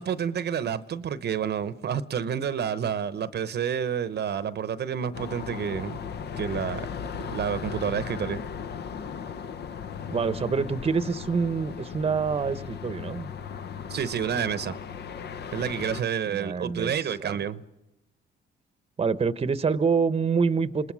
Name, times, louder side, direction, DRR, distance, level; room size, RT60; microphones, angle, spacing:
voice 1, 0.0-6.0 6.4-6.8 7.3-8.4 13.9-14.8 15.5-17.6, right 8 dB, 55° right, 0.9 m, -29 dB
sound 1, 5.1-16.0, left 7 dB, 55° left, 0.9 m, -37 dB
voice 2, 10.1-13.3 16.3-16.9 17.2-17.3 19.0-20.9, right 5 dB, 30° right, 0.9 m, -26 dB
27.5 x 20.0 x 6.2 m
cardioid pair, 90°, 20 cm